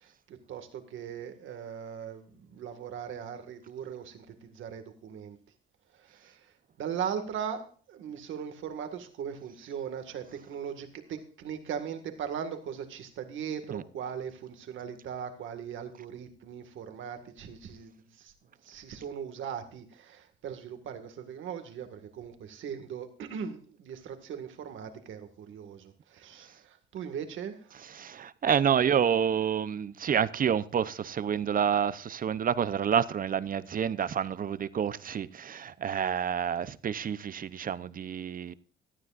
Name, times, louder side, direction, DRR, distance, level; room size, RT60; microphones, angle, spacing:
voice 1, 0.0-5.4 5.9-18.3 18.6-27.8, right 8 dB, 80° right, 1.9 m, -39 dB
voice 2, 27.9-38.5, right 8 dB, 45° right, 0.7 m, -28 dB
17.5 x 12.0 x 2.5 m
cardioid pair, 90°, 20 cm